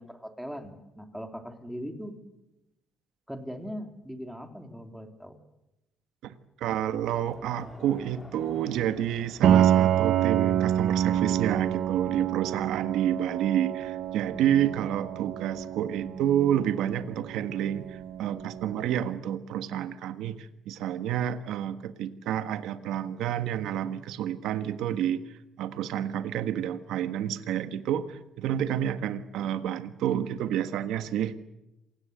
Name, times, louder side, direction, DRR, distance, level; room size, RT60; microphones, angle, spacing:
voice 1, 0.0-2.1 3.3-5.4, equal, ahead, 5 dB, 3.4 m, -40 dB
voice 2, 6.2-25.2 25.6-31.3, right 10 dB, 85° right, 10 dB, 1.5 m, -29 dB
Crowd, 6.8-12.0, left 1 dB, 15° left, 3.8 m, -51 dB
Piano, 9.4-19.0, right 10 dB, 65° right, 1.0 m, -27 dB
27.5 x 17.5 x 8.0 m, 0.91 s
cardioid pair, 125°, 0 cm